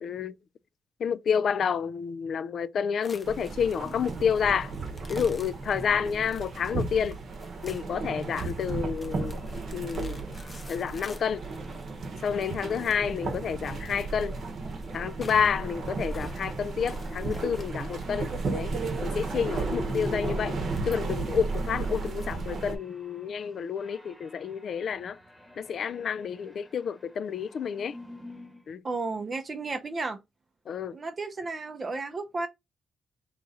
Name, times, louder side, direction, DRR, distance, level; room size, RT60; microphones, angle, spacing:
voice 1, 0.0-0.4 1.0-4.7 5.1-7.2 7.6-9.4 9.7-10.2 10.7-11.4 12.2-14.4 14.9-18.8 19.0-20.6 20.9-25.2 25.6-28.0 28.7-28.8 30.7-31.0, left 7 dB, 55° left, 0.3 m, -29 dB
sound 1, 3.0-22.3, left 2 dB, 25° left, 0.7 m, -51 dB
sound 2, 3.2-22.8, right 3 dB, 50° right, 0.9 m, -34 dB
sound 3, 8.8-28.7, left 1 dB, 5° left, 1.1 m, -46 dB
voice 2, 28.8-30.2 30.9-32.5, right 3 dB, 30° right, 0.5 m, -33 dB
3.7 x 2.9 x 4.0 m
wide cardioid pair, 150°, 0 cm